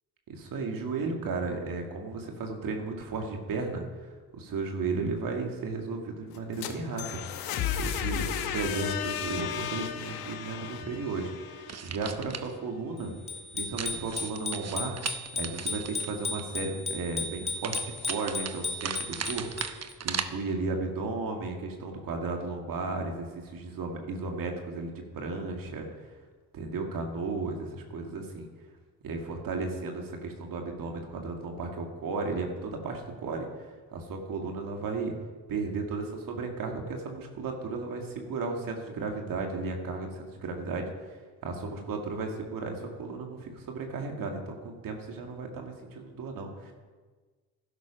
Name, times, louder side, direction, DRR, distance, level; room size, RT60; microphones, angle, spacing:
voice 1, 0.3-13.1 13.5-15.0 15.3-25.9 26.5-28.5 29.0-35.1 35.5-40.9 41.4-46.7, right 3 dB, 70° right, 2 dB, 2.2 m, -34 dB
sound 1, 6.3-12.2, left 9 dB, 80° left, 1.1 m, -34 dB
sound 2, 11.7-12.5 13.8-16.4 17.6-20.2, right 7 dB, 45° right, 1.0 m, -37 dB
Bicycle bell, 13.3-19.9, left 3 dB, 15° left, 2.1 m, -35 dB
12.0 x 11.0 x 5.2 m, 1.4 s
supercardioid pair, 70°, 35 cm